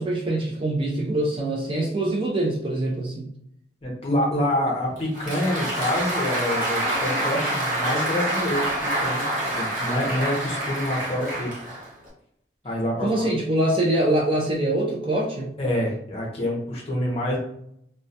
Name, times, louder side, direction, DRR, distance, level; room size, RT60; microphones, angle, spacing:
voice 1, 0.0-3.3 13.0-15.5, right 1 dB, 25° right, -1 dB, 0.3 m, -24 dB
voice 2, 3.8-8.7 9.0-11.5 12.6-13.3 15.6-17.4, left 1 dB, 30° left, -2 dB, 0.6 m, -26 dB
Applause, 5.0-12.1, right 1 dB, 45° right, 0.8 m, -27 dB
2.2 x 2.1 x 2.6 m, 0.74 s
head